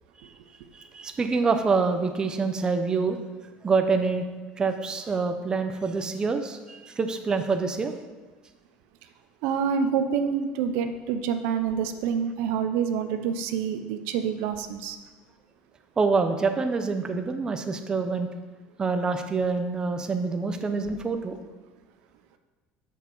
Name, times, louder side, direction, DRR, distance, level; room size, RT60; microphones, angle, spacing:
voice 1, 0.7-3.2 3.6-4.2 4.6-7.9 16.0-18.3 18.8-21.4, right 4 dB, 20° right, 6 dB, 0.6 m, -26 dB
voice 2, 9.4-15.0, right 7 dB, 80° right, 8 dB, 0.6 m, -27 dB
6.7 x 6.5 x 5.4 m, 1.3 s
cardioid pair, 135°, 4 cm